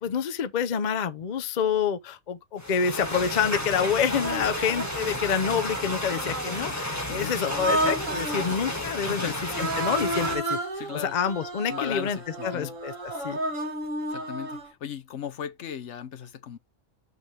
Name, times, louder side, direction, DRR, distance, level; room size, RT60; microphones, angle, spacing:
voice 1, 0.0-10.6 11.0-12.2 12.4-12.9 13.2-13.4, left 7 dB, 45° left, 0.6 m, -27 dB
sound 1, 2.6-10.4, left 1 dB, 15° left, 1.4 m, -32 dB
Human voice, 3.0-3.1 4.1-5.0 5.6-6.7 7.4-8.5 9.4-14.7, right 1 dB, 70° right, 2.1 m, -32 dB
voice 2, 9.1-9.4 10.7-11.2 11.7-12.7 14.1-16.6, left 8 dB, 65° left, 1.0 m, -37 dB
6.9 x 6.0 x 3.3 m
omnidirectional pair, 1.4 m